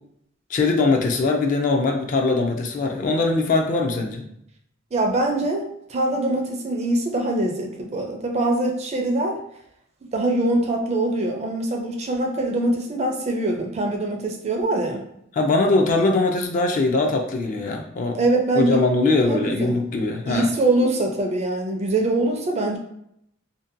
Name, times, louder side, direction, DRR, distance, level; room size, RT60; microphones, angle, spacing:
voice 1, 0.5-4.2 15.3-18.2 18.5-20.5, left 3 dB, 40° left, 3 dB, 0.3 m, -21 dB
voice 2, 4.9-9.4 10.1-15.0 18.1-18.8 19.2-19.8 20.3-22.8, right 2 dB, 35° right, 2 dB, 0.4 m, -23 dB
2.6 x 2.1 x 2.5 m, 0.74 s
head